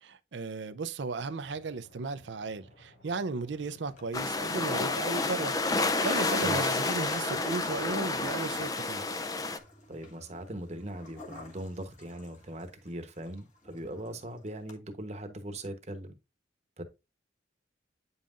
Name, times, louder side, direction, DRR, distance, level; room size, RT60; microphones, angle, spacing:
voice 1, 0.0-9.1, right 3 dB, 75° right, 0.5 m, -36 dB
sound 1, 1.3-8.8, left 1 dB, 65° left, 2.7 m, -57 dB
sound 2, 3.8-4.0 4.9-12.9 13.2-14.2 14.7-14.8, left 3 dB, 40° left, 1.7 m, -45 dB
sound 3, 4.1-9.6, left 3 dB, 20° left, 0.4 m, -30 dB
voice 2, 9.9-16.1 16.8-16.9, right 1 dB, 35° right, 1.0 m, -40 dB
8.8 x 5.5 x 2.5 m
head